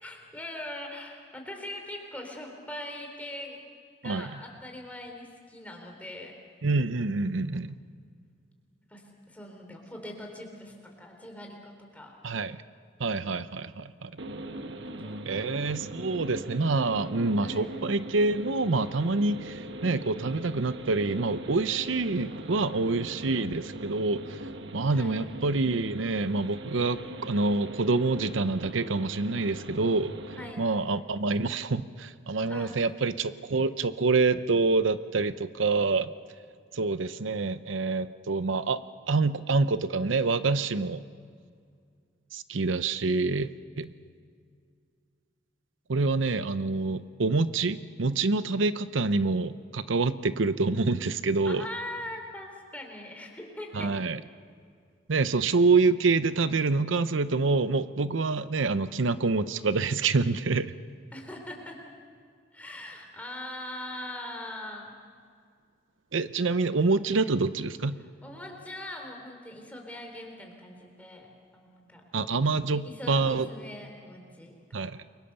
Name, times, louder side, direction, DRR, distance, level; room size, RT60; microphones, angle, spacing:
voice 1, 0.0-3.6 4.0-6.4 8.9-12.1 14.8-15.3 16.7-17.0 17.4-17.7 24.9-25.2 30.4-30.6 32.5-32.9 51.5-53.9 61.1-61.8 62.5-64.9 68.2-71.3 71.5-72.0 72.4-74.9, left 1 dB, 10° left, 2 dB, 3.7 m, -41 dB
voice 2, 6.6-7.8 12.2-12.6 13.0-14.1 15.2-24.4 24.7-30.1 30.6-36.1 36.7-38.8 39.1-41.0 42.3-43.5 43.8-43.9 45.9-51.7 53.7-54.2 55.1-60.7 66.1-68.0 72.1-73.5 74.7-75.0, right 3 dB, 85° right, 13 dB, 0.7 m, -26 dB
sound 1, 14.2-30.5, right 1 dB, 70° right, 1.4 m, -41 dB
29.5 x 23.5 x 6.9 m, 2.2 s
head